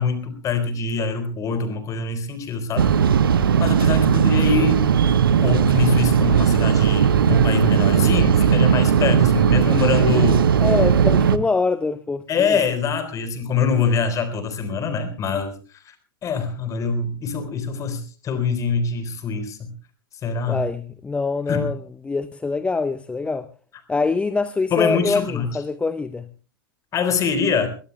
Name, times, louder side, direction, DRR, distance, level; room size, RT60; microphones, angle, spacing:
voice 1, 0.0-2.9 3.6-4.8 5.4-10.5 12.3-15.5 15.9-16.0 16.2-19.7 20.2-20.6 21.5-21.7 24.7-25.5 26.9-27.7, left 5 dB, 25° left, 4.0 m, -24 dB
sound 1, 2.8-11.4, right 7 dB, 65° right, 1.0 m, -17 dB
voice 2, 10.6-12.6 20.5-23.5 23.9-26.3, left 4 dB, 10° left, 0.7 m, -24 dB
21.5 x 21.5 x 2.3 m
figure-of-eight pair, 95°, 12 cm